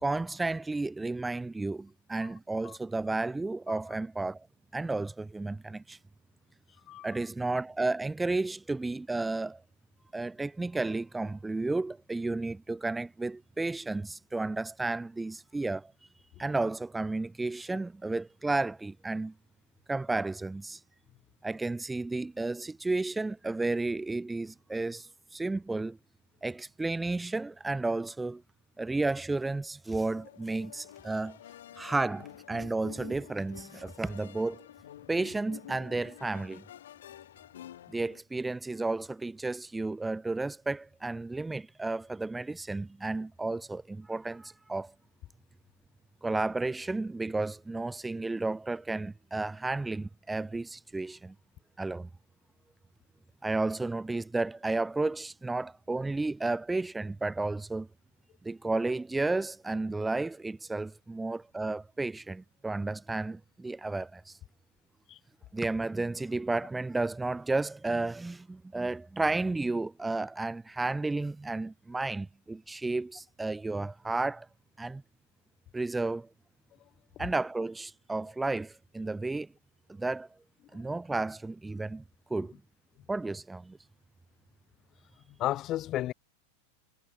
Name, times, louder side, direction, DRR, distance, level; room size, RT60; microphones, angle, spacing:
voice 1, 0.0-4.5 4.7-6.0 7.0-9.6 10.1-15.9 16.4-19.3 19.9-20.8 21.4-26.0 26.4-28.4 28.8-31.4 31.8-34.6 35.1-36.6 37.9-44.9 46.2-51.3 51.8-52.1 53.4-57.9 58.4-64.4 65.5-74.5 74.8-75.0 75.7-76.3 77.2-79.5 80.0-80.3 80.7-82.0 82.3-82.5 83.1-83.8, right 2 dB, 5° right, 0.7 m, -32 dB
sound 1, 29.9-38.2, left 11 dB, 85° left, 3.5 m, -50 dB
voice 2, 85.4-86.1, left 14 dB, 25° left, 1.0 m, -32 dB
supercardioid pair, 175°, 0 cm